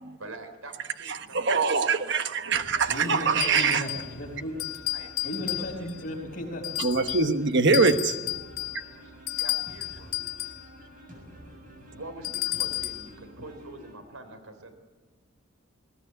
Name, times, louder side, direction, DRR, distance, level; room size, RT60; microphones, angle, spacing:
voice 1, 0.2-3.1 3.4-4.1 4.9-5.9 9.0-10.1 11.9-14.7, right 2 dB, 85° right, 8 dB, 3.6 m, -45 dB
voice 2, 1.1-3.8 6.8-8.2, right 4 dB, 55° right, 8 dB, 1.2 m, -23 dB
sound 1, 2.5-13.9, equal, 40° right, 7.7 m, -48 dB
voice 3, 2.8-4.6 5.2-6.7, left 1 dB, 40° left, -4 dB, 4.9 m, -35 dB
sound 2, 3.4-4.2 4.6-6.0 6.6-7.3 7.7-10.7 12.2-13.1, left 14 dB, 85° left, 2.1 m, -32 dB
21.0 x 19.5 x 9.2 m, 1.3 s
head